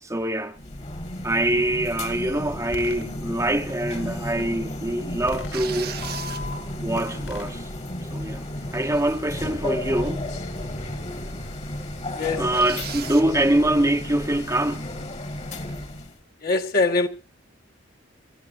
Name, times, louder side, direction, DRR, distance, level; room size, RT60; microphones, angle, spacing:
voice 1, 0.0-0.6 1.2-6.0 6.8-7.7 8.0-8.4 8.7-10.3 12.4-14.9, right 1 dB, 15° right, 0.9 m, -24 dB
sound 1, 0.6-16.2, left 1 dB, 35° left, 1.7 m, -33 dB
sound 2, 2.7-3.0 3.7-4.4 5.3-6.0 6.4-6.6 6.9-7.5, left 1 dB, 75° left, 5.0 m, -39 dB
sound 3, 2.9-3.1 3.6-4.5 5.5-6.8 7.4-7.5 7.9-8.3 8.6-9.5 10.0-10.3 10.6-10.7 11.3-11.4 11.7-11.8 12.5-13.3 15.6-16.0, right 10 dB, 55° right, 0.9 m, -39 dB
voice 2, 12.1-12.5 16.4-17.1, left 3 dB, 50° left, 1.5 m, -22 dB
26.0 x 15.0 x 2.6 m
head